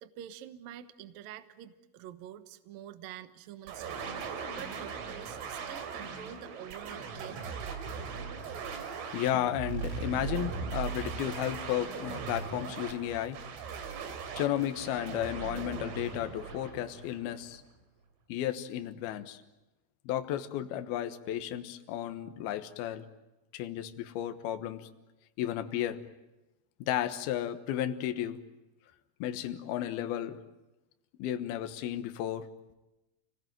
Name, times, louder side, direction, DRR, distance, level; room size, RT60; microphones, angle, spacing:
voice 1, 0.0-7.7, right 11 dB, 70° right, 11 dB, 2.3 m, -47 dB
sound 1, 3.7-17.5, right 6 dB, 85° right, 5.2 m, -39 dB
voice 2, 9.1-13.4 14.3-17.6 18.3-19.4 20.0-23.1 23.5-24.9 25.4-26.0 26.8-28.4 29.2-30.4 31.2-32.5, left 11 dB, 65° left, 9 dB, 2.7 m, -33 dB
29.5 x 19.5 x 9.2 m, 1.0 s
omnidirectional pair, 5.6 m